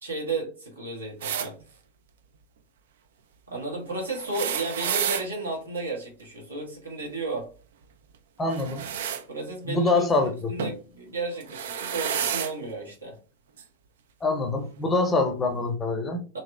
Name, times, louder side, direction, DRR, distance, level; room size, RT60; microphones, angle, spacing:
voice 1, 0.0-1.6 3.5-7.5 9.3-13.2 16.3-16.4, right 3 dB, 75° right, 1.5 m, -33 dB
sound 1, 1.2-1.5 4.1-5.3 8.5-9.2 10.6-10.8 11.4-12.5 13.6-13.7 14.9-15.0, right 8 dB, 60° right, 0.4 m, -30 dB
voice 2, 8.4-9.0 9.7-10.5 14.2-16.2, left 3 dB, 15° left, 0.6 m, -25 dB
4.1 x 2.8 x 2.2 m
figure-of-eight pair, 90°, 0 cm